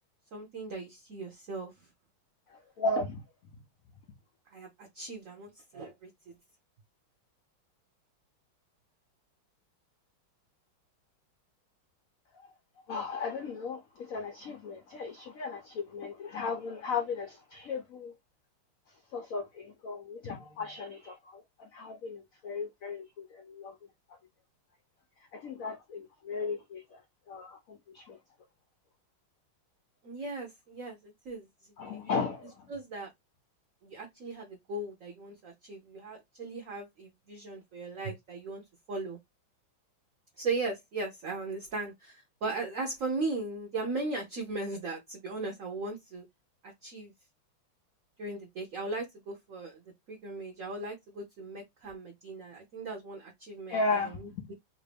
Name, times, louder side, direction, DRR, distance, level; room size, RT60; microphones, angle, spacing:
voice 1, 0.3-1.7 4.5-6.1 30.0-31.5 31.8-32.1 32.7-33.1 33.8-39.2 40.4-46.2 46.6-47.1 48.2-49.8 50.1-54.5, right 3 dB, 65° right, 0.8 m, -38 dB
voice 2, 2.8-3.2 12.9-18.1 19.1-23.7 25.3-27.0 27.3-28.2 31.8-32.7 53.7-54.5, left 3 dB, 80° left, 0.7 m, -35 dB
3.2 x 2.6 x 3.3 m
omnidirectional pair, 2.2 m